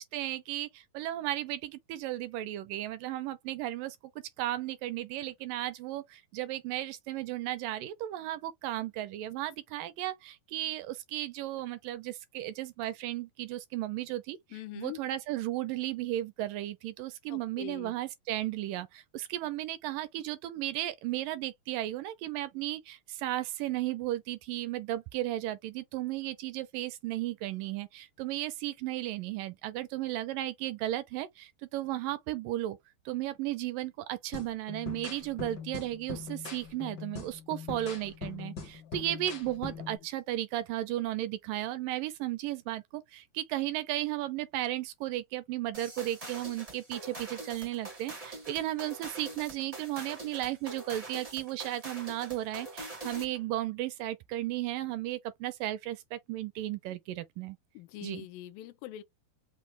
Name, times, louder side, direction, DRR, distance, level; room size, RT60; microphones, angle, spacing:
voice 1, 0.0-4.0 4.4-32.8 33.1-57.6 58.0-58.3, right 14 dB, 80° right, 2.1 m, -35 dB
voice 2, 14.5-15.0 17.3-17.9 38.8-39.0 57.7-59.0, left 14 dB, 80° left, 2.3 m, -43 dB
sound 1, 34.3-40.0, left 5 dB, 60° left, 1.1 m, -42 dB
sound 2, 45.7-53.4, right 2 dB, 40° right, 0.4 m, -44 dB
6.0 x 2.3 x 3.3 m
omnidirectional pair, 4.3 m